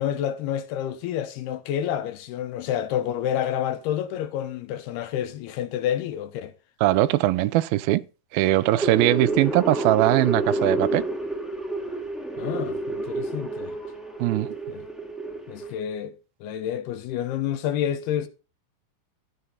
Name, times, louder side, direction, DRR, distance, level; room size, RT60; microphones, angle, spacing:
voice 1, 0.0-6.5 12.4-13.7 14.7-14.8 15.5-18.3, left 10 dB, 75° left, 2.9 m, -29 dB
voice 2, 6.8-8.0 8.3-11.0 14.2-14.5, right 16 dB, 80° right, 2.3 m, -21 dB
sound 1, 8.6-15.8, right 2 dB, ahead, 0.4 m, -29 dB
14.0 x 7.6 x 4.0 m
omnidirectional pair, 4.9 m